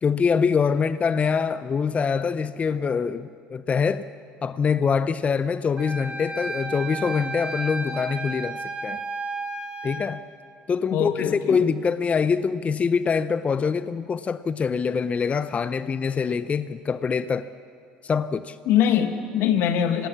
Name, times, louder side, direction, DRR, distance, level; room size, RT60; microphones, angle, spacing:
voice 1, 0.0-4.0 4.4-9.0 9.8-10.2 10.7-17.5 18.0-18.6, left 6 dB, 30° left, 14 dB, 0.7 m, -24 dB
Wind instrument woodwind instrument, 5.8-10.0, right 3 dB, 25° right, 2.8 m, -33 dB
voice 2, 10.9-11.6 18.6-20.1, left 9 dB, 65° left, 8 dB, 1.8 m, -22 dB
25.0 x 18.5 x 7.3 m, 2.3 s
hypercardioid pair, 70°, 4 cm